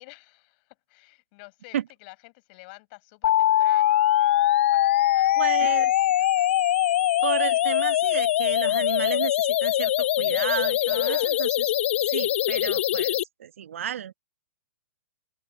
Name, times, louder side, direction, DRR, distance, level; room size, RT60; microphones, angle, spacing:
voice 1, 0.0-6.5 10.8-11.4, left 29 dB, 45° left, 5.8 m, -49 dB
sound 1, 3.2-13.2, left 13 dB, 60° left, 0.3 m, -22 dB
voice 2, 5.4-5.9 7.2-11.5 12.1-14.1, right 9 dB, 70° right, 1.8 m, -32 dB
open air
hypercardioid pair, 125°, 7 cm